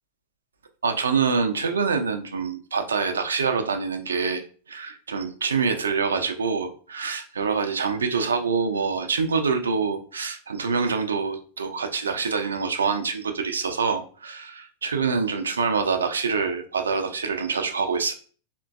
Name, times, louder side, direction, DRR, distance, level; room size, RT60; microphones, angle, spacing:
voice 1, 0.8-4.4 4.7-18.1, right 5 dB, 70° right, 7 dB, 0.4 m, -25 dB
3.7 x 2.2 x 2.3 m, 0.41 s
figure-of-eight pair, 90°, 0 cm